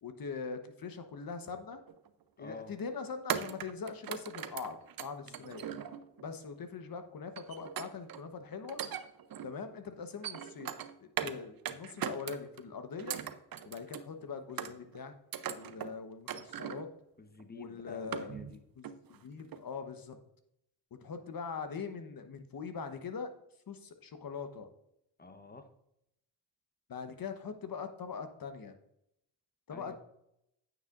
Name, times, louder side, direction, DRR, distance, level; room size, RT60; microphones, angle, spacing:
voice 1, 0.0-1.8 2.4-5.7 6.2-8.8 9.4-10.7 11.0-13.2 13.6-15.1 15.5-16.9 17.5-18.3 18.7-20.2 21.0-23.3 23.7-24.7 26.9-28.7 29.7-29.9, left 5 dB, 50° left, 8 dB, 1.1 m, -42 dB
sound 1, 1.9-2.1 3.3-6.2 7.4-8.2 8.6-9.5 10.0-11.4 11.6-12.6 13.0-14.1 14.6-15.0 15.3-15.9 16.3-16.9 17.4-17.5 17.8-18.6 18.8-19.2 19.5-19.6, right 9 dB, 50° right, 0.7 m, -39 dB
voice 2, 2.4-2.7 5.2-5.4 17.2-18.6 25.2-25.7 29.7-29.9, left 3 dB, 20° left, 8 dB, 1.1 m, -49 dB
9.2 x 6.8 x 2.5 m, 0.78 s
supercardioid pair, 55°, 44 cm